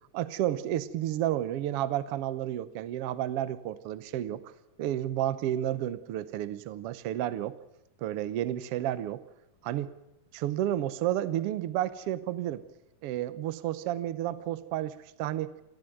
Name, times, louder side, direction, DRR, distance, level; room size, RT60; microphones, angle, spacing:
voice 1, 0.1-4.5 4.8-7.6 8.0-9.2 9.6-9.9 10.3-12.6 13.0-15.6, right 12 dB, 80° right, 15 dB, 1.3 m, -31 dB
28.5 x 12.0 x 9.1 m, 0.92 s
omnidirectional pair, 3.9 m